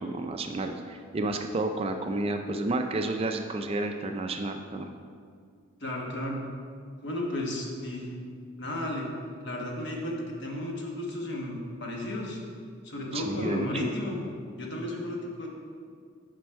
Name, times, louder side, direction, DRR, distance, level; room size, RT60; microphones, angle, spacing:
voice 1, 0.0-4.9 13.1-13.9, right 2 dB, 30° right, 6 dB, 0.3 m, -31 dB
voice 2, 5.8-6.4 7.0-8.1 8.6-9.1 9.4-12.4 12.8-14.2 14.6-15.5, left 1 dB, 55° left, -1 dB, 1.2 m, -33 dB
7.6 x 5.2 x 4.6 m, 2.2 s
head